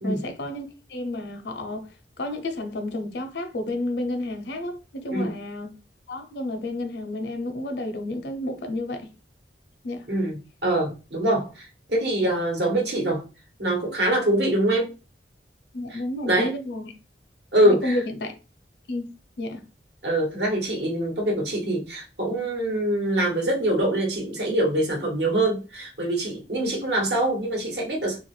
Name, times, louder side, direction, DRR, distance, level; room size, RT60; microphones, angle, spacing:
voice 1, 0.0-1.9 2.2-5.7 6.1-9.1 9.8-10.0 15.7-16.9 17.6-18.3 18.9-19.0 19.4-19.6 26.6-26.7, left 1 dB, 75° left, 0.6 m, -31 dB
voice 2, 10.1-13.2 13.6-14.9 15.9-16.5 17.5-18.0 20.0-28.2, right 1 dB, 75° right, 1.1 m, -24 dB
2.8 x 2.4 x 3.1 m
head